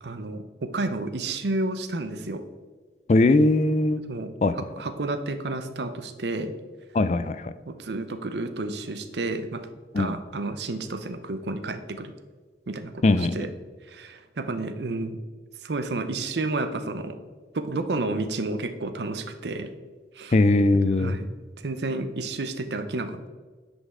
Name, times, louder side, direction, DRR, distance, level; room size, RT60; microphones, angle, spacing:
voice 1, 0.0-2.4 4.1-4.3 4.6-6.5 7.7-9.6 10.0-12.1 12.7-13.5 13.9-15.2 15.6-17.2 17.5-19.7 20.2-20.3 21.0-21.3 21.6-23.3, right 2 dB, 80° right, 9 dB, 0.7 m, -31 dB
voice 2, 3.1-4.0 4.4-4.5 6.9-7.5 9.9-10.2 13.0-13.5 20.3-21.2, left 2 dB, 40° left, 13 dB, 0.4 m, -20 dB
9.7 x 5.4 x 3.7 m, 1.4 s
head